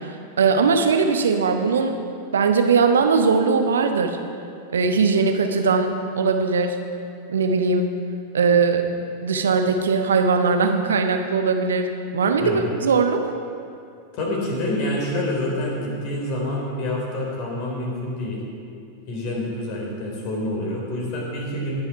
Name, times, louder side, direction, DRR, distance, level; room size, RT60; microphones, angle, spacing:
voice 1, 0.4-2.0 2.3-4.2 4.7-6.8 7.3-7.9 8.3-8.9 9.2-11.9 12.1-13.2, right 5 dB, 65° right, 6 dB, 1.0 m, -20 dB
voice 2, 14.1-18.4 19.1-21.8, left 1 dB, 45° left, -2 dB, 3.6 m, -27 dB
19.5 x 7.0 x 4.7 m, 2.5 s
figure-of-eight pair, 90°, 0 cm